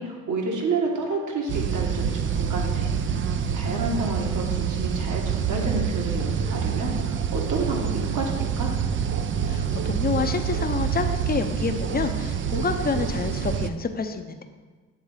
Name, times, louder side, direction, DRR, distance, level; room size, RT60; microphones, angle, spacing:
voice 1, 0.0-2.9 3.5-8.7, right 3 dB, 55° right, 0 dB, 1.6 m, -29 dB
sound 1, 1.5-13.7, right 7 dB, 35° right, 0.4 m, -27 dB
voice 2, 9.5-14.4, left 5 dB, 25° left, 7 dB, 0.7 m, -28 dB
8.7 x 3.6 x 4.9 m, 1.4 s
supercardioid pair, 70°, 36 cm